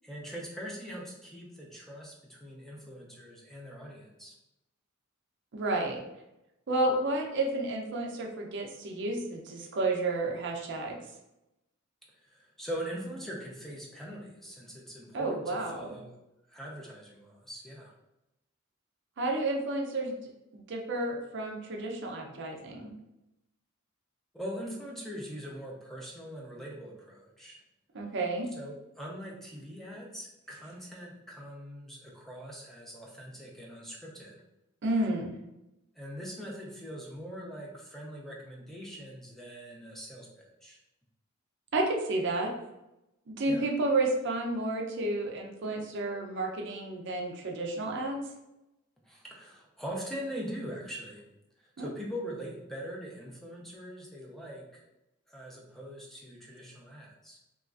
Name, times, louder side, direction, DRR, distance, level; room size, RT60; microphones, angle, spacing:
voice 1, 0.0-4.3 12.2-16.1 16.5-17.9 24.3-27.6 28.6-34.4 35.9-40.8 43.5-43.7 49.0-51.2 51.6-54.9 55.3-57.4, equal, ahead, -3 dB, 0.4 m, -42 dB
voice 2, 5.5-6.0 6.7-11.0 15.1-16.0 19.2-20.1 20.7-22.9 27.9-28.5 34.8-35.3 41.7-42.5 43.3-48.2 51.8-51.9, right 2 dB, 60° right, 0 dB, 0.5 m, -31 dB
2.9 x 2.4 x 2.4 m, 0.91 s
head